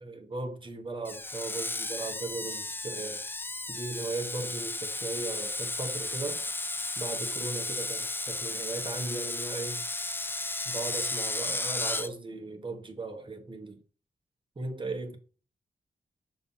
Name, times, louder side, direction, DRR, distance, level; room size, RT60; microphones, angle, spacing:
voice 1, 0.0-3.2 3.7-6.4 7.0-9.8 10.6-13.8 14.6-15.2, right 3 dB, 30° right, 1.2 m, -37 dB
Screech, 1.0-12.1, left 2 dB, 15° left, 0.3 m, -34 dB
6.8 x 2.8 x 5.4 m
wide cardioid pair, 100°, 17 cm